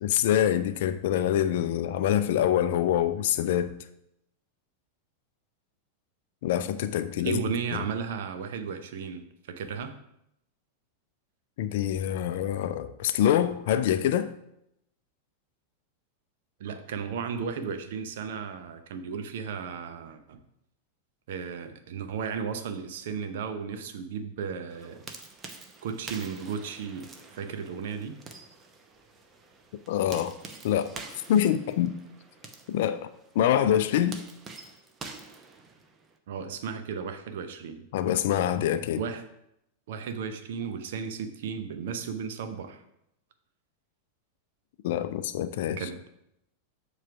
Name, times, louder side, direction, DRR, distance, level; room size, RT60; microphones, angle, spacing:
voice 1, 0.0-3.7 6.4-7.4 7.7-7.8 11.6-14.3 29.9-30.3 30.6-31.0 31.3-31.9 32.7-33.1 33.3-34.2 37.9-39.0 44.8-45.8, left 10 dB, 55° left, 0.4 m, -25 dB
voice 2, 7.2-10.0 16.6-20.4 21.3-25.0 25.8-28.2 36.3-37.9 39.0-39.3 39.9-42.8 45.8-46.0, right 6 dB, 55° right, 0.7 m, -34 dB
sound 1, 24.7-36.2, right 4 dB, 20° right, 0.8 m, -47 dB
7.4 x 3.2 x 5.7 m
figure-of-eight pair, 90°, 0 cm